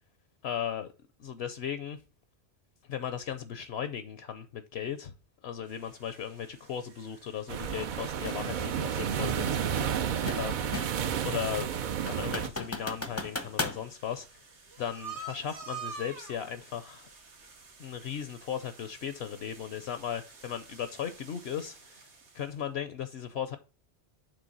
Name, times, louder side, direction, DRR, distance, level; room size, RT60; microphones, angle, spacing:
voice 1, 0.4-0.9 1.2-2.0 2.9-5.1 5.4-10.0 10.3-10.7 11.2-11.7 12.1-14.4 14.8-17.1 17.8-22.0 22.3-23.6, left 9 dB, 70° left, 0.9 m, -37 dB
sound 1, 5.6-22.6, right 4 dB, 85° right, 1.5 m, -50 dB
sound 2, 7.5-12.5, right 8 dB, 55° right, 0.6 m, -31 dB
sound 3, 8.2-8.5 9.8-11.1 11.5-11.6 12.1-13.8, left 2 dB, 15° left, 0.5 m, -36 dB
6.9 x 3.3 x 5.3 m
omnidirectional pair, 1.1 m